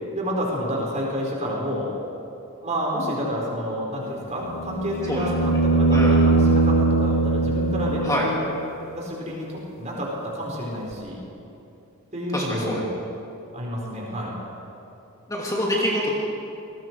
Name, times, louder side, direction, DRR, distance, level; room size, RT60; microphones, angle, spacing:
voice 1, 0.1-1.9 2.6-8.4 9.0-11.2 12.1-12.9 13.5-14.4, equal, 35° right, -2 dB, 4.9 m, -29 dB
sound 1, 4.4-8.5 10.9-11.0, right 3 dB, 75° left, 2.0 m, -21 dB
voice 2, 12.3-12.8 15.3-16.1, equal, 15° left, -4 dB, 2.8 m, -25 dB
28.0 x 21.5 x 4.8 m, 2.8 s
head